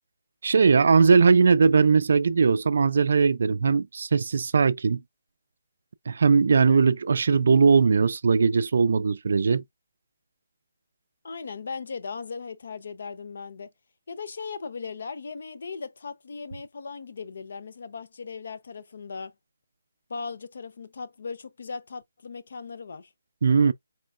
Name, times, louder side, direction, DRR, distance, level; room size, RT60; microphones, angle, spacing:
voice 1, 0.4-5.0 6.1-9.6 23.4-23.7, right 5 dB, 55° right, 0.4 m, -20 dB
voice 2, 11.2-13.7 14.1-19.3 20.1-23.1, left 5 dB, 55° left, 0.7 m, -38 dB
4.4 x 3.1 x 2.4 m
hypercardioid pair, 175°, 0 cm